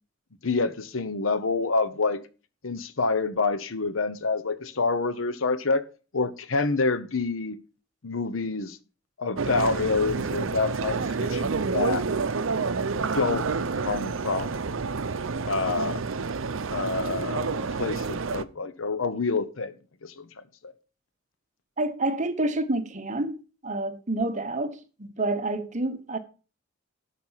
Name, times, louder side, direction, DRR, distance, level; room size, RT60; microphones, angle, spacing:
voice 1, 0.4-2.2 2.6-5.8 6.1-7.6 8.0-8.8 9.2-12.1 13.0-13.5 13.8-14.7 15.5-16.0 16.7-19.7 20.0-20.3 20.6-20.7, left 3 dB, 75° left, 0.9 m, -27 dB
sound 1, 9.4-18.4, right 4 dB, 70° right, 0.6 m, -29 dB
voice 2, 21.8-26.2, right 2 dB, 35° right, 1.1 m, -28 dB
12.5 x 5.7 x 5.7 m
head